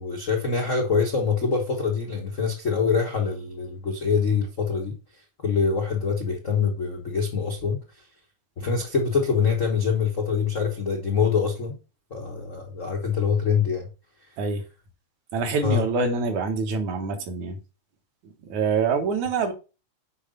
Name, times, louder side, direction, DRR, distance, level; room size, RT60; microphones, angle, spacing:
voice 1, 0.0-4.9 5.4-7.8 8.6-11.8 12.1-13.9 15.6-15.8, left 5 dB, 70° left, 0.7 m, -24 dB
voice 2, 15.3-17.6 18.2-19.5, right 4 dB, 70° right, 2.8 m, -25 dB
8.0 x 4.9 x 5.1 m
omnidirectional pair, 3.6 m